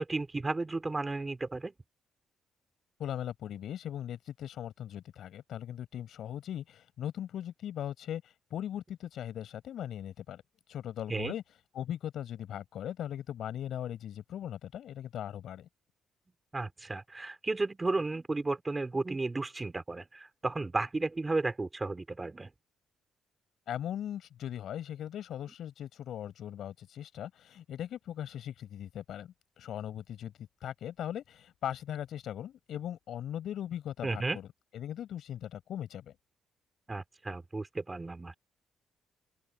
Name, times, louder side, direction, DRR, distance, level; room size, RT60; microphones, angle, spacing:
voice 1, 0.0-1.7 11.1-11.3 16.5-22.5 34.0-34.4 36.9-38.3, right 3 dB, 20° right, 4.2 m, -33 dB
voice 2, 3.0-10.4 10.7-11.4 11.7-15.7 23.7-34.5 34.7-36.1, left 10 dB, 70° left, 5.0 m, -39 dB
open air
cardioid pair, 90°, 0 cm